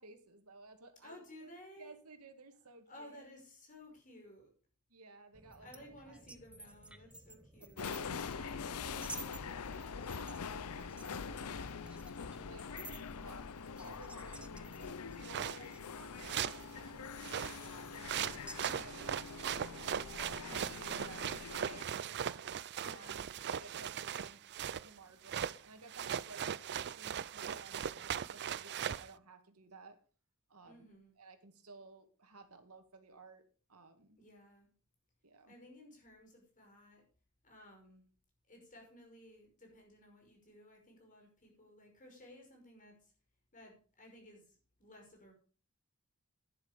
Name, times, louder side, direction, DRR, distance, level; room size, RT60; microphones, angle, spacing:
voice 1, 0.0-1.5 1.8-3.2 4.9-6.2 6.6-6.7 7.6-12.1 12.3-12.7 13.2-13.5 13.8-17.1 17.4-20.2 20.7-22.4 22.9-23.1 23.4-24.4 24.8-26.4 27.0-30.0 30.5-30.8 31.2-33.4 33.7-34.2 35.2-35.5, right 3 dB, 75° right, 7 dB, 2.2 m, -57 dB
voice 2, 1.0-1.9 2.9-4.5 5.6-7.9 22.7-23.3 30.6-31.1 34.2-34.7 35.5-37.0 37.4-38.0 38.5-43.1 43.5-45.3, left 1 dB, 35° left, 1 dB, 5.6 m, -57 dB
sound 1, 5.3-18.7, right 2 dB, 5° right, 1.0 m, -54 dB
sound 2, 7.8-21.8, left 5 dB, 80° left, 0.7 m, -44 dB
sound 3, 15.2-15.6 16.2-16.6 17.2-24.9 25.2-25.6 25.9-29.1, right 9 dB, 50° right, 0.5 m, -39 dB
11.5 x 10.5 x 5.2 m, 0.40 s
head